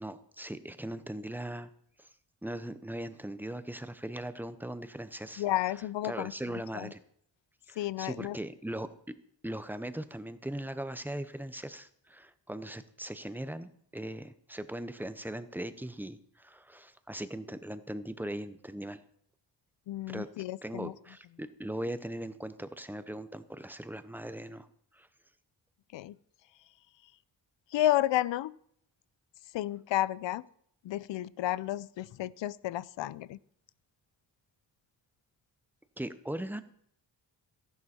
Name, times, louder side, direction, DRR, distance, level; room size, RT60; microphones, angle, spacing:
voice 1, 0.0-1.7 2.0-2.1 2.4-5.4 6.0-7.0 7.7-8.9 9.4-19.0 20.1-20.3 20.6-24.7 24.9-25.1 36.0-36.6, right 1 dB, 5° right, 12 dB, 0.7 m, -39 dB
voice 2, 5.4-6.9 7.8-8.4 19.9-20.9 25.9-26.2 27.7-28.6 29.5-30.5 30.8-33.4, left 14 dB, 85° left, 20 dB, 0.6 m, -32 dB
14.5 x 11.0 x 4.3 m, 0.65 s
wide cardioid pair, 130°, 43 cm